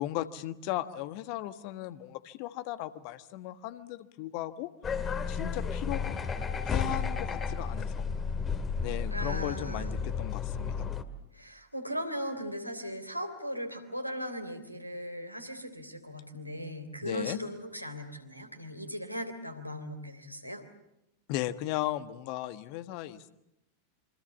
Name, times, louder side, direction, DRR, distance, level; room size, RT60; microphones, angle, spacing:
voice 1, 0.0-4.7 5.3-6.1 6.6-8.0 8.8-10.9 17.0-17.4 21.3-23.3, left 15 dB, 45° left, 12 dB, 1.4 m, -36 dB
sound 1, 4.8-11.0, left 6 dB, 20° left, 2.0 m, -32 dB
voice 2, 9.1-9.9 11.3-20.6, equal, 90° right, 5 dB, 3.4 m, -38 dB
27.0 x 25.5 x 7.3 m, 0.88 s
figure-of-eight pair, 90°, 0 cm